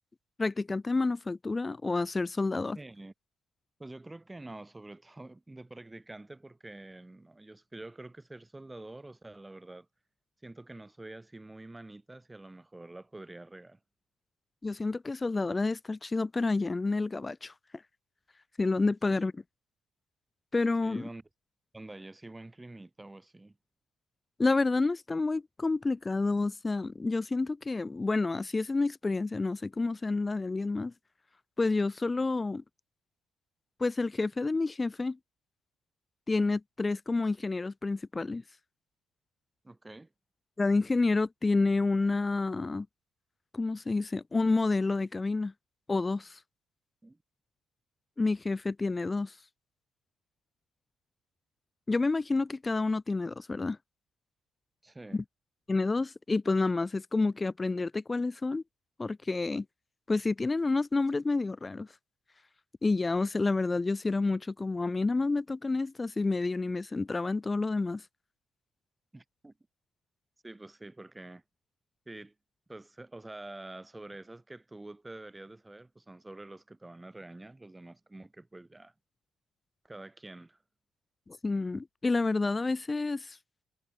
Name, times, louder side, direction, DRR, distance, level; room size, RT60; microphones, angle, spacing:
voice 1, 0.4-2.8 14.6-17.5 18.6-19.4 20.5-21.1 24.4-30.9 31.6-32.6 33.8-35.2 36.3-38.4 40.6-42.9 43.5-45.5 45.9-46.4 48.2-49.3 51.9-53.8 55.1-55.2 55.7-58.6 59.0-59.6 60.1-61.9 62.8-68.0 81.3-83.4, left 3 dB, 25° left, 1.4 m, -29 dB
voice 2, 2.8-3.1 3.8-9.9 10.4-13.8 19.1-19.3 20.8-21.2 21.7-23.6 39.6-40.1 47.0-47.2 54.8-55.2 69.1-69.5 70.4-71.4 72.1-72.3 72.7-78.9 79.8-80.6, right 2 dB, 15° right, 5.9 m, -47 dB
cardioid pair, 90°, 0 cm